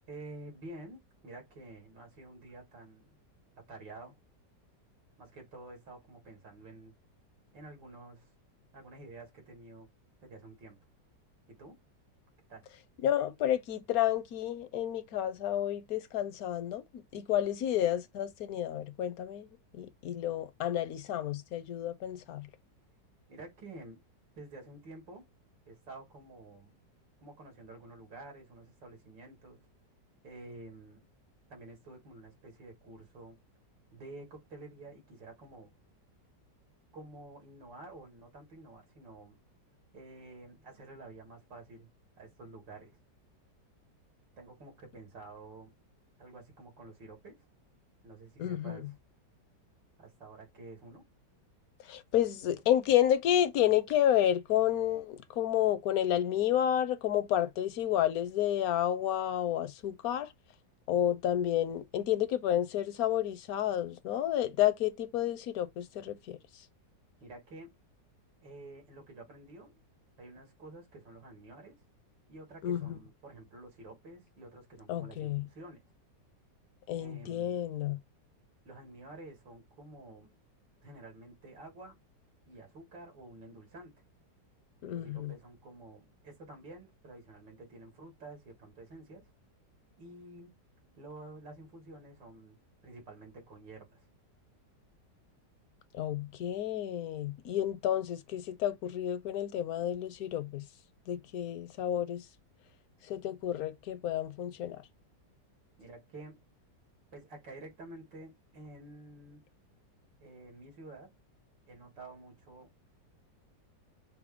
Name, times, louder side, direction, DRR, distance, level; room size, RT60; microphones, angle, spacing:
voice 1, 0.1-3.2 3.6-4.2 5.2-6.9 7.5-8.3 8.7-9.9 10.2-10.8 11.5-11.8 12.5-12.7 23.3-24.0 24.3-25.3 25.7-26.8 27.2-29.7 30.2-31.1 31.5-33.4 33.9-35.7 36.9-39.4 39.9-41.9 42.2-43.0 44.4-45.7 46.2-47.5 48.0-48.9 50.0-51.0 67.2-67.7 68.4-69.8 70.2-71.8 72.3-75.8 77.0-77.7 78.6-80.3 80.8-82.0 82.5-83.9 84.9-89.3 90.0-90.5 91.0-92.6 92.8-94.1 105.8-106.4 107.1-109.5 110.2-111.1 111.7-112.7, right 2 dB, 90° right, 2.9 m, -50 dB
voice 2, 13.0-19.5 19.7-22.5 48.4-48.9 51.8-60.3 60.9-66.4 72.6-73.0 74.9-75.4 76.9-78.0 84.8-85.3 95.9-100.6 101.1-102.3 103.1-104.8, left 11 dB, 65° left, 1.0 m, -30 dB
5.9 x 2.0 x 3.5 m
omnidirectional pair, 1.9 m